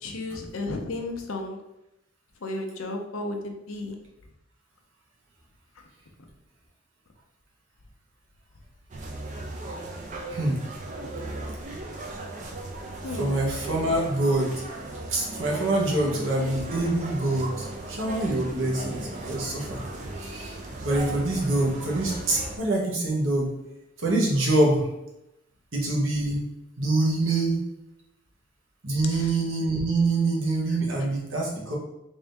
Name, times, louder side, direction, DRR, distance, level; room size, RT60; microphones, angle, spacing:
voice 1, 0.0-1.6 2.4-4.0 13.0-13.4 16.1-16.3 29.1-29.3, left 2 dB, 90° left, 3 dB, 0.6 m, -33 dB
sound 1, 8.9-22.6, right 2 dB, 35° right, 0.5 m, -37 dB
voice 2, 10.3-10.6 11.3-11.6 13.1-14.6 15.1-20.6 20.8-23.5 24.0-24.9 25.7-26.4 26.8-27.6 28.8-31.8, right 2 dB, 70° right, -2 dB, 1.1 m, -25 dB
3.5 x 2.7 x 3.4 m, 0.89 s
head